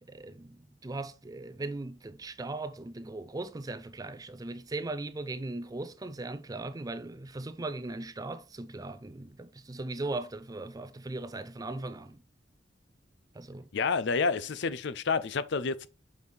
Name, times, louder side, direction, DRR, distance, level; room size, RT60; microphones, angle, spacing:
voice 1, 0.0-12.2 13.3-13.7, right 2 dB, 20° right, 0.4 m, -38 dB
voice 2, 13.7-15.9, left 4 dB, 60° left, 0.5 m, -29 dB
6.2 x 5.5 x 3.3 m
head